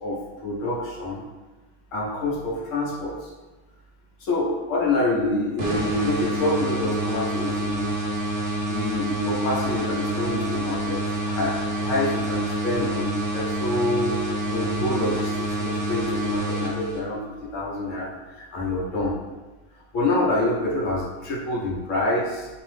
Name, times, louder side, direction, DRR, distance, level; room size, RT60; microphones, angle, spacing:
voice 1, 0.0-1.3 1.9-3.3 4.2-7.9 8.7-19.2 19.9-22.5, left 2 dB, 85° left, -4 dB, 1.1 m, -27 dB
sound 1, 5.6-17.3, right 1 dB, 60° right, 0.8 m, -27 dB
2.7 x 2.0 x 3.1 m, 1.2 s
omnidirectional pair, 1.3 m